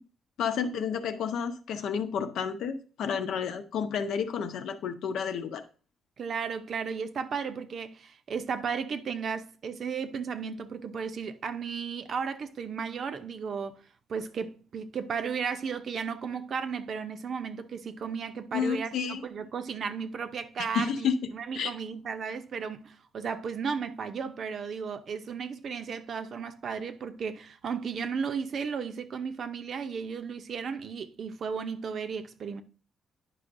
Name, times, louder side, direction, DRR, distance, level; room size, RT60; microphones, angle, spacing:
voice 1, 0.4-5.6 18.5-19.2 20.7-21.1 21.5-21.7, left 7 dB, 75° left, 0.8 m, -31 dB
voice 2, 6.2-13.8 14.1-32.6, right 6 dB, 50° right, 0.6 m, -34 dB
9.9 x 5.5 x 2.6 m
cardioid pair, 115°, 0 cm